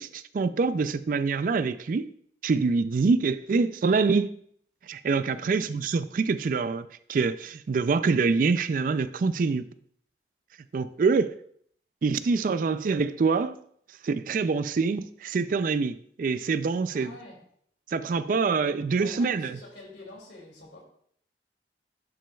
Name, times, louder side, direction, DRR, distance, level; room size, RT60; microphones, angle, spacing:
voice 1, 0.0-2.1 2.4-4.4 4.9-9.6 10.7-11.3 12.0-13.6 14.0-17.1 17.9-19.6, right 4 dB, 50° right, 0.3 m, -25 dB
voice 2, 5.2-5.7 16.9-17.4 18.6-20.8, left 2 dB, 85° left, 2.6 m, -46 dB
11.0 x 6.2 x 2.3 m
head